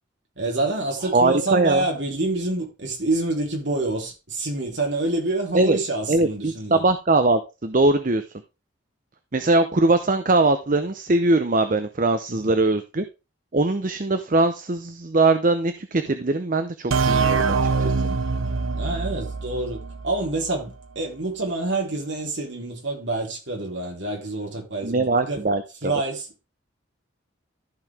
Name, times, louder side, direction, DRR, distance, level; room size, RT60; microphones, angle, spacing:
voice 1, 0.4-6.8 12.3-12.6 18.7-25.4 25.8-26.5, right 2 dB, 60° right, 3.6 m, -27 dB
voice 2, 1.1-1.8 5.5-5.8 6.1-8.2 9.3-13.0 13.5-17.5 17.8-17.9 24.8-25.6, right 2 dB, 40° right, 0.7 m, -21 dB
sound 1, 16.9-20.5, right 4 dB, 80° right, 0.6 m, -24 dB
13.5 x 5.5 x 3.5 m
head